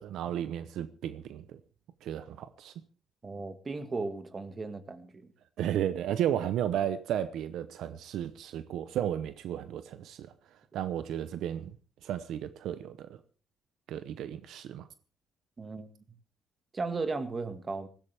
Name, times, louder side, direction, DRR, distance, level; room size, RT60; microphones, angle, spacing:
voice 1, 0.0-1.6 2.0-2.7 5.6-10.3 10.7-11.8 12.0-13.2 13.9-14.9, right 10 dB, 80° right, 0.8 m, -33 dB
voice 2, 3.2-5.3 15.6-15.9 16.7-17.9, right 3 dB, 35° right, 1.9 m, -36 dB
19.0 x 15.5 x 3.5 m
cardioid pair, 90°, 0 cm